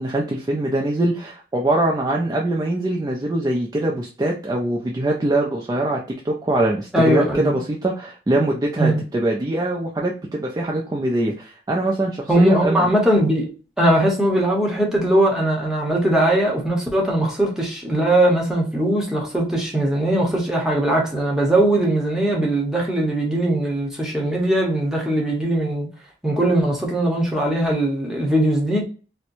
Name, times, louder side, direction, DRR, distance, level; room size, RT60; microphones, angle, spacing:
voice 1, 0.0-6.0 6.2-12.9, right 1 dB, 20° right, 0.4 m, -22 dB
voice 2, 6.9-7.6 8.7-9.0 12.3-13.5 13.8-25.9 26.2-28.8, right 1 dB, 5° right, 0.9 m, -20 dB
4.3 x 2.1 x 2.6 m
head